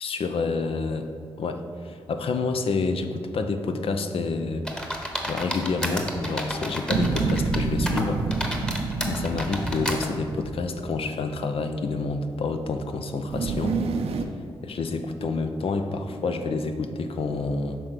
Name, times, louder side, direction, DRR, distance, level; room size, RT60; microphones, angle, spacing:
voice 1, 0.0-1.1 1.4-4.7 5.3-8.3 8.7-13.8 14.6-17.8, left 3 dB, 65° left, 7 dB, 0.6 m, -28 dB
sound 1, 4.7-7.6 7.9-10.1, equal, 10° left, 1.2 m, -31 dB
sound 2, 6.9-10.9 13.3-14.2, right 4 dB, 75° right, 0.5 m, -28 dB
6.2 x 3.9 x 6.0 m, 2.5 s
supercardioid pair, 40°, 10 cm